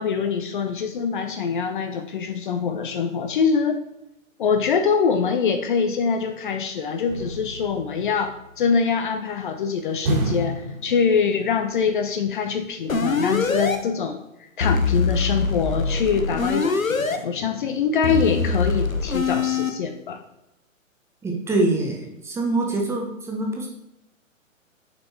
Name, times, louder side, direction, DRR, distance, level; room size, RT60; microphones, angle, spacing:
voice 1, 0.0-3.8 4.4-20.2, left 6 dB, 40° left, 7 dB, 0.7 m, -24 dB
sound 1, 7.1-8.8 10.1-11.6 11.8-11.9, right 1 dB, 40° right, 2.0 m, -29 dB
sound 2, 12.9-13.8 14.6-17.2 18.0-19.7, left 4 dB, 85° left, 1.0 m, -23 dB
voice 2, 21.2-23.7, right 2 dB, 5° right, 0 dB, 0.9 m, -24 dB
7.0 x 5.4 x 4.4 m, 0.89 s
figure-of-eight pair, 125°, 40 cm